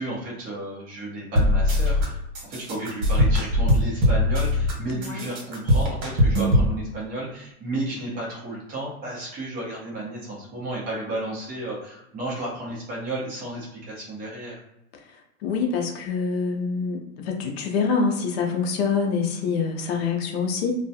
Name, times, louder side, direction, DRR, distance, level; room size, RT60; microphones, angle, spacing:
voice 1, 0.0-2.2 2.5-14.5, right 2 dB, 20° right, -5 dB, 0.7 m, -33 dB
sound 1, 1.4-2.1 2.3-4.7 5.0-6.7, left 1 dB, 65° right, 1.2 m, -20 dB
voice 2, 5.0-5.3 15.4-17.0 17.2-20.8, left 5 dB, 45° left, 2 dB, 0.5 m, -25 dB
2.2 x 2.2 x 2.7 m, 0.87 s
hypercardioid pair, 140°, 44 cm